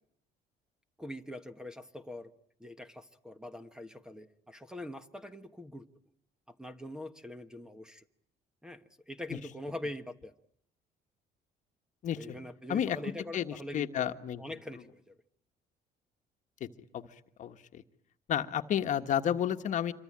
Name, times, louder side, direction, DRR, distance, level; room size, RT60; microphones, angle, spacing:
voice 1, 1.0-2.3 2.6-5.9 6.5-8.0 8.6-10.3 12.1-15.1, left 1 dB, 5° right, 9 dB, 1.3 m, -43 dB
voice 2, 12.0-12.4 12.7-13.0 13.3-14.4 16.6-16.7 16.9-17.1 17.4-17.8 18.3-19.9, left 9 dB, 50° left, 8 dB, 1.4 m, -31 dB
27.0 x 24.0 x 8.8 m, 0.69 s
cardioid pair, 145°, 17 cm